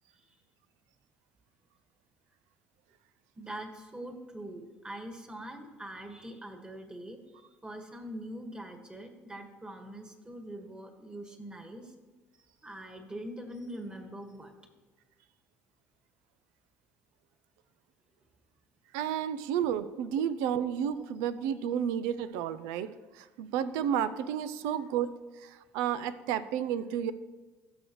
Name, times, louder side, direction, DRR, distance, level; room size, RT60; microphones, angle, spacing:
voice 1, 3.3-11.9 12.6-14.5, right 1 dB, 15° right, 4 dB, 1.6 m, -43 dB
voice 2, 18.9-22.9 23.2-25.1 25.4-27.1, right 9 dB, 80° right, 14 dB, 0.5 m, -31 dB
16.0 x 6.4 x 3.1 m, 1.2 s
supercardioid pair, 80°, 5 cm